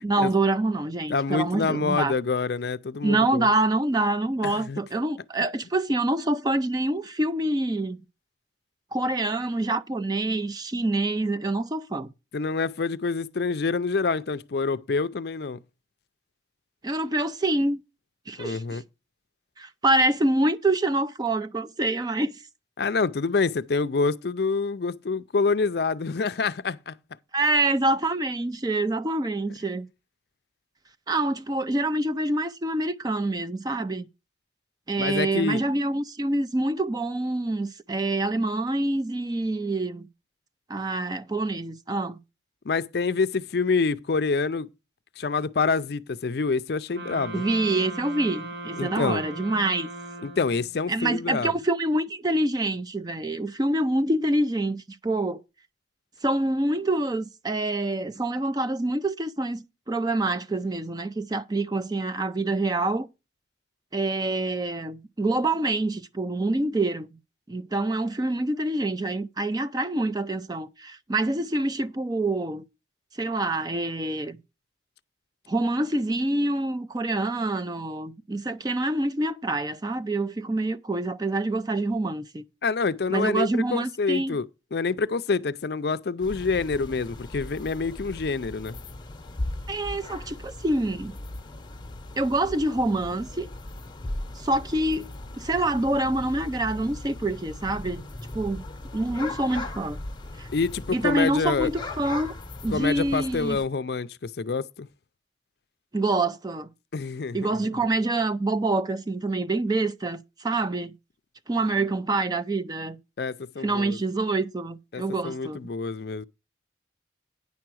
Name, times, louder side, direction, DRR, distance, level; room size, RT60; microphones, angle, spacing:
voice 1, 0.0-2.1 3.0-8.0 8.9-12.1 16.8-17.8 18.3-18.8 19.6-22.3 27.3-29.9 31.1-34.1 34.9-40.1 40.7-42.2 47.3-49.9 50.9-55.4 56.2-63.1 63.9-67.1 67.5-72.6 73.2-74.4 75.5-82.4 83.1-84.4 89.7-91.1 92.2-93.5 94.4-95.1 95.4-98.0 98.3-98.6 98.9-100.0 100.4-100.5 100.9-102.3 102.6-103.6 105.9-106.7 107.3-110.9 111.5-113.0 113.6-115.6, right 2 dB, 20° right, 0.4 m, -26 dB
voice 2, 1.1-3.5 4.4-4.8 12.3-15.6 18.4-18.8 22.8-26.9 35.0-35.6 42.7-44.7 45.2-47.5 48.8-49.2 50.2-51.5 82.6-88.8 100.5-101.7 102.7-104.9 106.9-107.6 113.2-114.0 114.9-116.3, left 4 dB, 55° left, 0.5 m, -27 dB
sound 1, 46.9-50.8, right 2 dB, 65° right, 1.7 m, -38 dB
sound 2, 86.2-103.6, left 2 dB, 25° left, 0.9 m, -38 dB
9.6 x 5.8 x 6.2 m
head